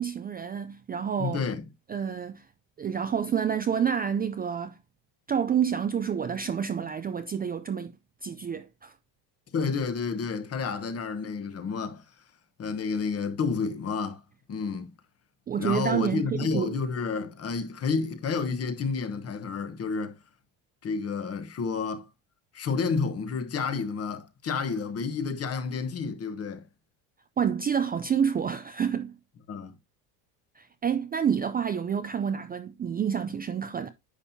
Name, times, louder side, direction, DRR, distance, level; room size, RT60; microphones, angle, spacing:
voice 1, 0.0-1.4 1.9-2.4 2.8-4.8 5.3-7.9 8.2-8.9 15.5-16.7 27.4-29.2 30.6-33.9, right 7 dB, 20° right, 0.4 m, -28 dB
voice 2, 1.2-1.6 9.5-12.0 12.6-14.2 14.5-14.9 15.6-20.2 20.8-22.0 22.5-26.6 29.5-29.8, left 5 dB, 35° left, 1.1 m, -30 dB
9.9 x 5.4 x 2.7 m
cardioid pair, 125°, 43 cm